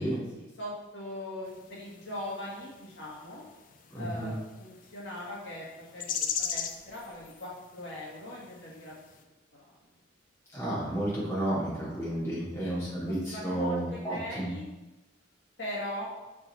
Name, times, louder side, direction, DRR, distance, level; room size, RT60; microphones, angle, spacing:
voice 1, 0.4-3.4 4.0-8.9 9.5-9.7 12.0-12.1 12.6-12.7 13.1-14.6 15.6-16.1, left 1 dB, 60° left, -5 dB, 1.7 m, -40 dB
sound 1, 1.5-9.2, left 7 dB, 40° left, 0.5 m, -40 dB
voice 2, 3.9-4.3 10.5-14.5, right 1 dB, 15° left, -8 dB, 2.2 m, -32 dB
5.7 x 5.4 x 4.2 m, 1.1 s
head